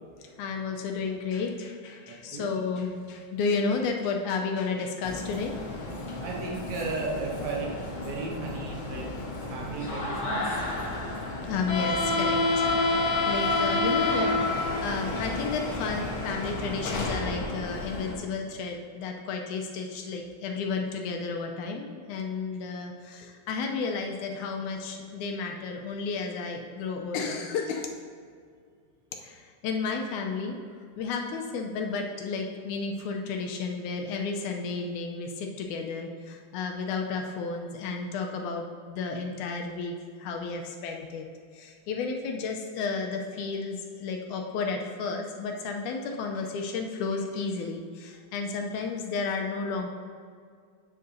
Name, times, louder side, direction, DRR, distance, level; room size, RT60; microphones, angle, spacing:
voice 1, 0.4-5.5 11.4-27.9 29.2-30.6 31.0-41.3 41.5-49.9, left 4 dB, 80° left, 2 dB, 2.0 m, -32 dB
voice 2, 2.0-2.5 6.2-9.1 9.5-10.6, right 3 dB, 70° right, -2 dB, 2.0 m, -35 dB
sound 1, 5.0-18.1, left 2 dB, 60° left, 1.3 m, -30 dB
9.2 x 7.5 x 2.7 m, 2.1 s
omnidirectional pair, 3.6 m